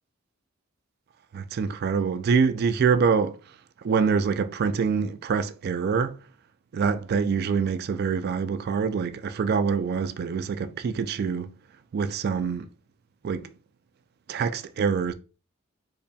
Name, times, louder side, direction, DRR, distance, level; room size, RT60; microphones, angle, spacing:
voice 1, 1.3-3.4 3.8-6.2 6.7-11.6 11.9-12.7 13.2-13.5 14.3-15.1, right 6 dB, 50° right, 0.3 m, -25 dB
4.0 x 3.1 x 2.3 m
head